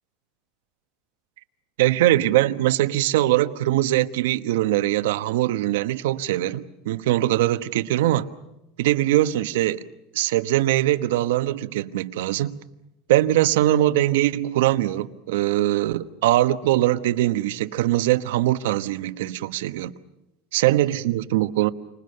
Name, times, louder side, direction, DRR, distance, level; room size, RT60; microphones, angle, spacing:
voice 1, 1.8-8.3 8.8-9.8 10.1-12.6 13.1-19.9 20.5-21.7, right 14 dB, 85° right, 1.1 m, -22 dB
29.5 x 25.5 x 6.8 m
supercardioid pair, 145°, 0 cm